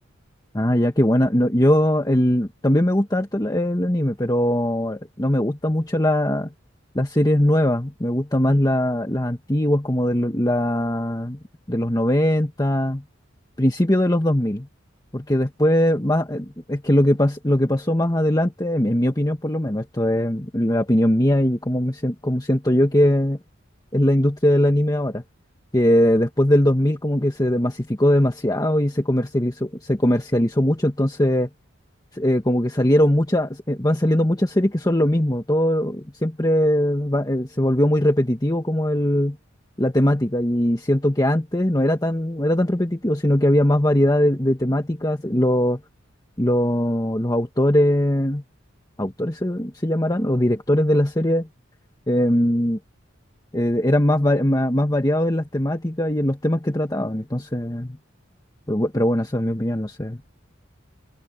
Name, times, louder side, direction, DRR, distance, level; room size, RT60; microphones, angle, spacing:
voice 1, 0.5-6.5 7.0-11.4 11.7-13.0 13.6-14.7 15.1-23.4 23.9-25.2 25.7-31.5 32.1-39.4 39.8-45.8 46.4-48.4 49.0-51.5 52.1-52.8 53.5-58.0 58.7-60.2, left 1 dB, 20° left, 1.7 m, -20 dB
head